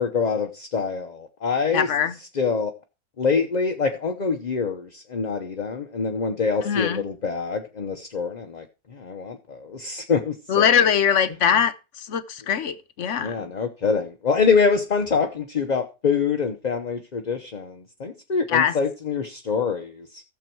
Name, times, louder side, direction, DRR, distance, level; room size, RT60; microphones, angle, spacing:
voice 1, 0.0-1.9 2.4-2.7 3.2-8.7 8.9-10.7 13.2-20.2, left 5 dB, 35° left, 0.8 m, -25 dB
voice 2, 1.7-2.2 6.6-7.0 10.5-13.5 18.5-18.8, left 8 dB, 55° left, 1.0 m, -22 dB
14.5 x 7.1 x 4.5 m
omnidirectional pair, 1.6 m